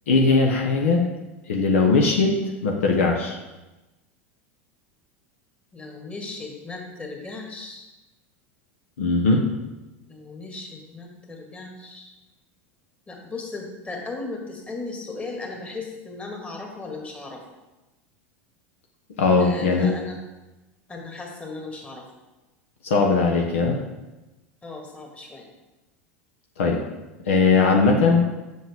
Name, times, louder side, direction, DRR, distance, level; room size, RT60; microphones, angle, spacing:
voice 1, 0.1-1.0 1.5-2.3 2.6-3.4 9.0-9.4 19.2-19.9 22.8-23.8 26.6-26.8 27.3-28.2, left 4 dB, 75° left, 1 dB, 1.0 m, -19 dB
voice 2, 5.7-7.9 10.0-12.1 13.1-17.4 19.4-20.2 20.9-22.0 24.6-25.5, left 3 dB, 20° left, 0 dB, 1.9 m, -36 dB
7.7 x 6.2 x 3.6 m, 1.1 s
hypercardioid pair, 85°, 7 cm